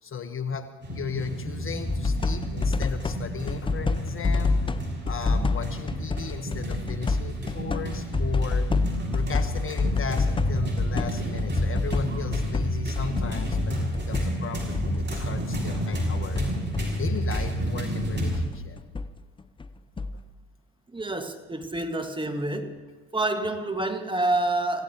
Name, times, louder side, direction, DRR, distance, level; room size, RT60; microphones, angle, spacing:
voice 1, 0.0-4.6 5.0-8.7 9.1-16.5 17.0-18.8, left 6 dB, 35° left, 1.3 m, -36 dB
sound 1, 0.8-18.4, equal, 30° right, 6.6 m, -30 dB
sound 2, 1.9-3.2 3.5-15.9 16.1-19.1 19.4-20.3, left 3 dB, 15° left, 0.6 m, -28 dB
voice 2, 20.9-22.8 23.1-24.8, right 2 dB, 15° right, 1.8 m, -28 dB
27.5 x 16.5 x 3.0 m
hypercardioid pair, 75°, 37 cm